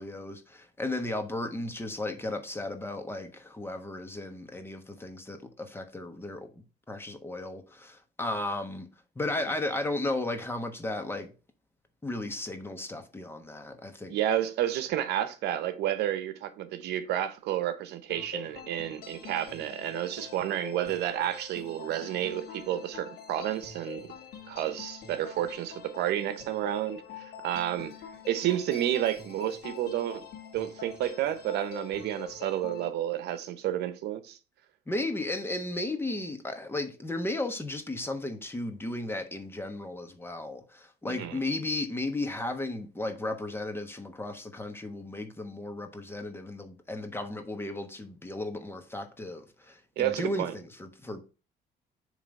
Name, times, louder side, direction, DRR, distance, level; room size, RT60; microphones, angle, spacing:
voice 1, 0.0-8.9 9.1-11.3 12.0-14.2 34.9-51.2, left 2 dB, 15° left, 1.2 m, -35 dB
voice 2, 14.1-24.1 24.5-27.9 28.3-30.3 30.5-34.4 41.1-41.4 50.0-50.5, right 12 dB, 80° right, 0.9 m, -31 dB
sound 1, 18.1-32.9, left 7 dB, 70° left, 1.9 m, -45 dB
7.3 x 3.4 x 5.3 m
cardioid pair, 110°, 17 cm